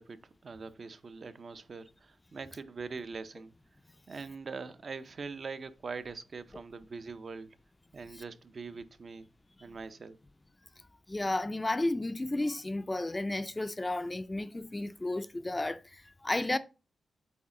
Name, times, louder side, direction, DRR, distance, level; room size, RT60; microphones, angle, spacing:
voice 1, 0.0-3.5 4.1-7.5 7.9-9.3 9.6-10.2, right 4 dB, 45° right, 0.6 m, -43 dB
voice 2, 11.1-16.6, left 2 dB, 15° left, 0.4 m, -33 dB
8.5 x 3.9 x 3.7 m
cardioid pair, 105°, 0 cm